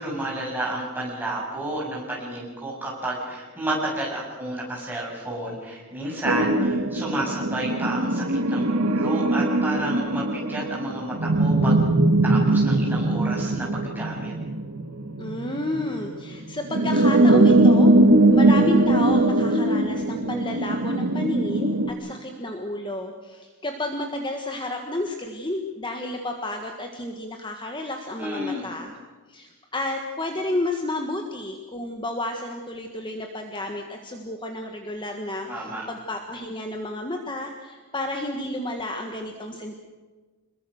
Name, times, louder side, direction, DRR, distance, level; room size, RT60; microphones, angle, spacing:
voice 1, 0.0-11.8 12.2-14.3 28.2-28.7 35.5-35.8, right 1 dB, 10° right, -4 dB, 7.3 m, -31 dB
sound 1, 6.2-21.9, right 2 dB, 85° right, 2.1 m, -21 dB
voice 2, 15.2-17.9 18.3-28.9 29.3-39.7, left 1 dB, 20° left, 3 dB, 1.6 m, -31 dB
27.0 x 21.5 x 6.5 m, 1.3 s
head